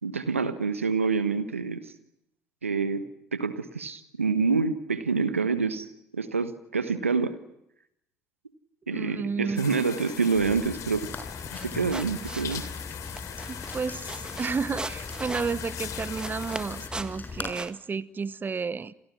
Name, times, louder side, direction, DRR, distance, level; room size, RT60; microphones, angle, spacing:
voice 1, 0.0-1.9 2.6-5.9 6.1-7.4 8.9-11.1 11.6-12.6, right 4 dB, 90° right, 1.3 m, -27 dB
voice 2, 8.9-9.8 13.7-18.9, right 5 dB, 30° right, 1.0 m, -32 dB
sound 1, 9.6-16.9, left 9 dB, 55° left, 3.1 m, -40 dB
Rain, 10.3-17.5, left 3 dB, 25° left, 5.5 m, -41 dB
sound 2, 11.4-17.7, right 2 dB, 10° right, 1.6 m, -41 dB
28.5 x 28.5 x 5.9 m
figure-of-eight pair, 50°, 7 cm